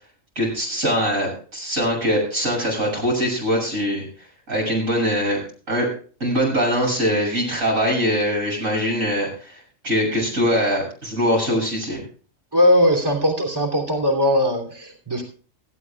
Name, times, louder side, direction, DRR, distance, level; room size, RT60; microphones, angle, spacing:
voice 1, 0.4-4.1 4.5-5.4 5.7-5.9 6.2-12.0, equal, 80° right, 0 dB, 7.7 m, -22 dB
voice 2, 12.5-15.2, left 1 dB, 15° right, 1 dB, 3.2 m, -19 dB
18.0 x 15.0 x 2.4 m, 0.40 s
omnidirectional pair, 1.4 m